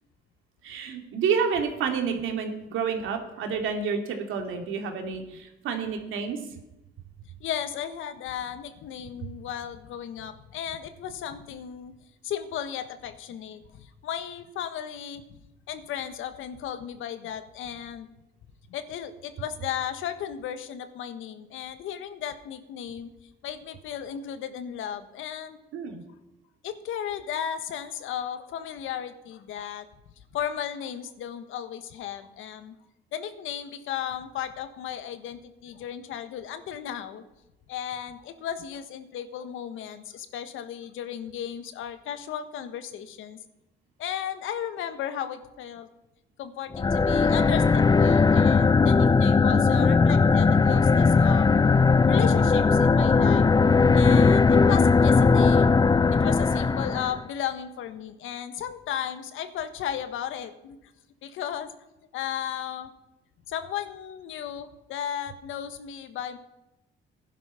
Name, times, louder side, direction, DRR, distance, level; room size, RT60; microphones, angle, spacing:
voice 1, 0.6-6.6 25.7-26.0, right 6 dB, 85° right, 4 dB, 2.6 m, -29 dB
voice 2, 7.4-11.9 12.2-18.1 18.7-23.1 23.4-25.6 26.6-29.8 30.3-32.7 33.1-37.2 37.7-43.4 44.0-45.9 46.4-51.5 52.1-53.4 53.9-55.7 56.1-60.8 61.2-61.7 62.1-62.9 63.5-66.4, left 9 dB, 85° left, 10 dB, 1.4 m, -35 dB
sound 1, 46.7-57.2, left 4 dB, 20° left, 0.5 m, -19 dB
15.5 x 11.0 x 5.7 m, 0.94 s
cardioid pair, 90°, 20 cm